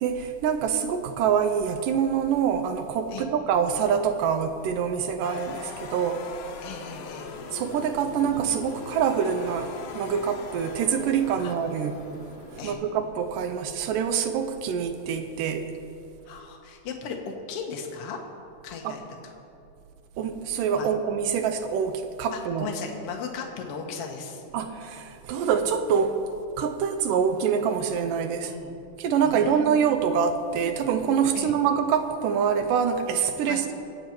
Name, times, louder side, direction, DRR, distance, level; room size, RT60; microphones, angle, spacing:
voice 1, 0.0-6.2 7.5-12.0 12.6-15.7 18.8-19.0 20.2-22.7 24.5-26.2 26.6-28.5 29.0-33.8, right 7 dB, 75° right, 8 dB, 2.2 m, -25 dB
sound 1, 5.2-13.4, left 6 dB, 80° left, 2.8 m, -41 dB
voice 2, 6.6-7.3 11.4-11.5 12.6-12.8 16.3-18.2 18.6-19.4 20.8-20.9 22.3-24.4 28.4-28.8 29.2-29.9 31.3-31.5 33.4-33.6, left 6 dB, 60° left, 1 dB, 1.7 m, -37 dB
sound 2, 7.3-12.7, right 1 dB, 35° right, 4.0 m, -48 dB
24.0 x 8.0 x 4.4 m, 2.7 s
omnidirectional pair, 4.1 m